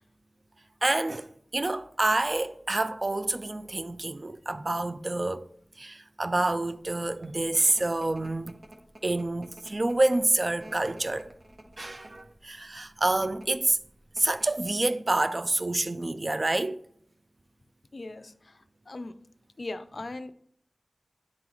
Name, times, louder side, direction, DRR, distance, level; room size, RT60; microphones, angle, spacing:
voice 1, 0.8-5.5 5.8-8.6 9.0-11.3 11.8-13.8 14.2-16.8, right 2 dB, 45° right, 0.4 m, -28 dB
sound 1, 6.9-12.4 13.1-13.5 13.8-13.9 14.2-14.7, right 1 dB, 70° right, 0.9 m, -50 dB
voice 2, 17.9-19.2 19.6-20.3, left 2 dB, 65° left, 0.4 m, -39 dB
9.5 x 3.8 x 3.0 m
wide cardioid pair, 45°, 0 cm